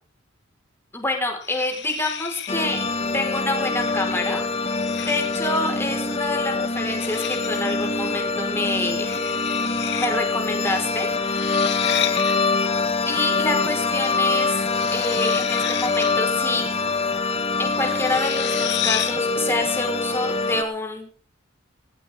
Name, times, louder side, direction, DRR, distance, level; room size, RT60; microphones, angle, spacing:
voice 1, 0.9-2.8 3.1-4.4 5.0-9.1 9.9-11.1 13.0-14.6 14.9-16.7 17.6-21.1, left 2 dB, 10° left, 2 dB, 4.9 m, -27 dB
sound 1, 1.4-2.7 3.9-4.1 4.7-5.7 6.9-7.7 9.0-10.1 10.4-10.5 11.2-12.4 14.3-16.3 17.8-19.2, left 10 dB, 55° left, 2.4 m, -31 dB
sound 2, 2.5-20.6, left 4 dB, 30° left, 1.9 m, -24 dB
19.0 x 18.5 x 3.7 m, 0.38 s
head